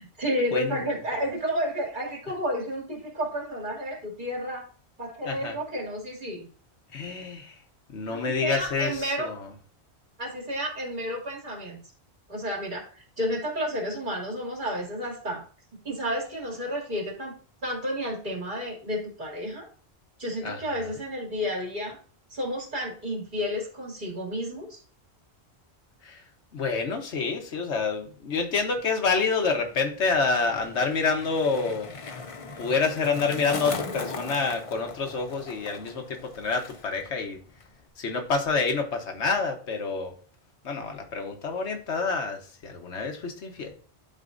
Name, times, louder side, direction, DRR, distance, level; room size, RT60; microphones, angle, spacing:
voice 1, 0.0-4.7 5.0-6.5 8.1-9.3 10.2-11.8 12.3-15.4 15.7-19.7 20.2-22.0 22.3-24.8, equal, 45° right, -2 dB, 2.6 m, -31 dB
voice 2, 0.5-0.9 5.2-5.6 6.9-7.5 7.9-9.5 20.4-20.6 26.0-26.2 26.5-31.9 32.6-37.4 38.0-40.1 40.6-43.7, left 4 dB, 85° left, 4 dB, 1.4 m, -28 dB
Skateboard, 29.6-37.1 37.3-37.9, left 3 dB, 35° left, 0.6 m, -39 dB
11.5 x 4.3 x 2.6 m, 0.42 s
omnidirectional pair, 1.1 m